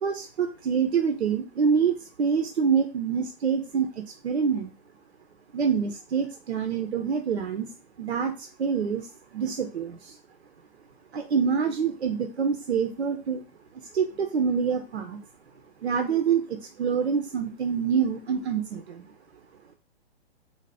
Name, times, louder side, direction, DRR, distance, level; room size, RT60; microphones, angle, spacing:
voice 1, 0.0-4.7 5.5-7.7 8.0-10.2 11.1-13.4 13.9-15.2 15.8-19.1, right 6 dB, 85° right, 5 dB, 0.5 m, -26 dB
2.6 x 2.0 x 3.2 m, 0.33 s
figure-of-eight pair, 120°, 32 cm